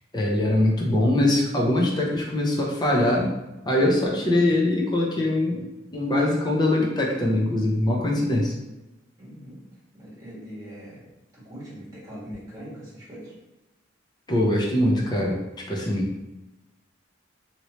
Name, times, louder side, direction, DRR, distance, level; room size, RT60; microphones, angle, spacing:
voice 1, 0.1-3.3 3.6-5.7 5.9-8.5 14.3-16.2, left 1 dB, 20° left, -2 dB, 0.6 m, -22 dB
voice 2, 9.2-9.6 9.9-11.0 11.3-13.3, equal, 20° right, -8 dB, 1.5 m, -41 dB
2.9 x 2.8 x 3.0 m, 1.0 s
head